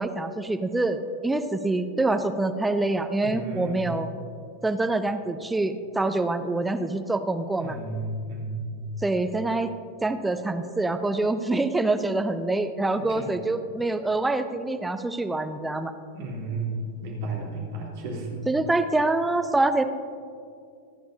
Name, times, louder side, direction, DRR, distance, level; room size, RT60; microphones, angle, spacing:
voice 1, 0.0-4.1 4.6-7.8 9.0-9.7 10.0-15.9 18.5-19.8, right 2 dB, 10° right, 8 dB, 0.6 m, -25 dB
voice 2, 3.2-3.9 7.6-8.7 13.0-13.3 16.1-18.4, right 2 dB, 50° right, -3 dB, 3.4 m, -33 dB
24.5 x 10.0 x 2.8 m, 2.4 s
figure-of-eight pair, 90°, 0 cm